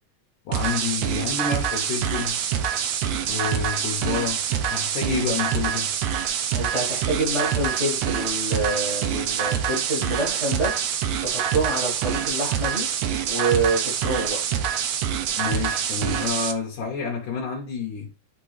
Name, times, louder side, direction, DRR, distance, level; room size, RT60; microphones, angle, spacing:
voice 1, 0.5-2.4 3.2-5.9 15.4-18.1, left 5 dB, 70° left, 2.3 m, -29 dB
sound 1, 0.5-16.5, right 8 dB, 80° right, 1.5 m, -26 dB
voice 2, 6.5-10.7 11.2-12.9 13.2-14.4, right 2 dB, 40° right, 1.0 m, -27 dB
10.5 x 3.7 x 3.2 m
omnidirectional pair, 3.9 m